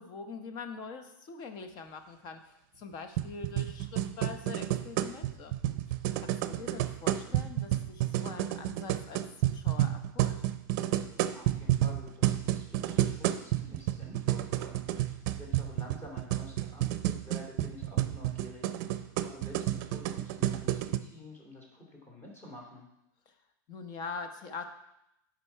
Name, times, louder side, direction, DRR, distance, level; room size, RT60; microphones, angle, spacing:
voice 1, 0.0-5.6 6.2-10.4 23.3-23.4 23.7-24.7, left 5 dB, 40° left, 7 dB, 1.0 m, -43 dB
sound 1, 3.2-21.0, right 13 dB, 55° right, 0.5 m, -30 dB
voice 2, 6.4-6.7 11.3-22.9, left 1 dB, 20° left, -1 dB, 2.8 m, -49 dB
9.8 x 5.3 x 4.6 m, 0.83 s
supercardioid pair, 140°, 11 cm